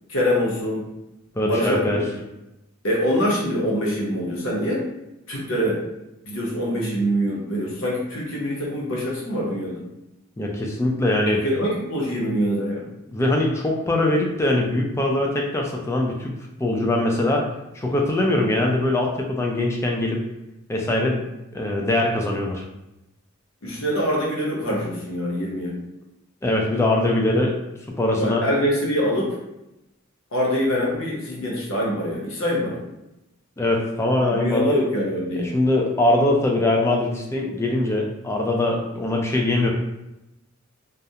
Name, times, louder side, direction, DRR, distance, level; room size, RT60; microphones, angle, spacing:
voice 1, 0.1-0.9 1.4-2.0 2.8-4.9 5.3-5.8 6.2-9.8 11.4-12.8 23.6-25.8 28.2-29.4 30.3-32.8 34.3-35.5, equal, 65° left, -4 dB, 0.8 m, -24 dB
voice 2, 1.4-2.0 10.4-11.4 13.1-16.3 16.6-17.4 17.7-20.2 20.7-21.3 21.5-22.6 26.4-27.6 28.0-28.4 33.6-34.7 35.3-39.7, left 1 dB, 15° left, 0 dB, 0.3 m, -22 dB
2.4 x 2.1 x 2.7 m, 0.92 s
head